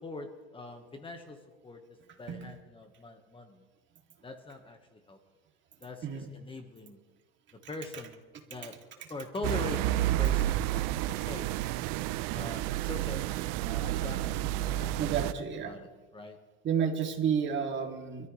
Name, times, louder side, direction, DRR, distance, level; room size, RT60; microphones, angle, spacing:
voice 1, 0.0-1.8 2.2-3.6 4.2-5.2 5.8-7.0 7.7-8.2 8.5-8.7 9.1-10.9 11.2-11.5 12.3-13.3 13.6-15.1 15.6-16.4, left 2 dB, 15° left, 5 dB, 1.5 m, -42 dB
sound 1, 9.4-15.3, right 14 dB, 60° right, 0.7 m, -30 dB
voice 2, 15.0-15.8 16.6-18.3, right 7 dB, 40° right, 2 dB, 2.8 m, -31 dB
26.0 x 14.0 x 3.3 m, 1.3 s
supercardioid pair, 120°, 30 cm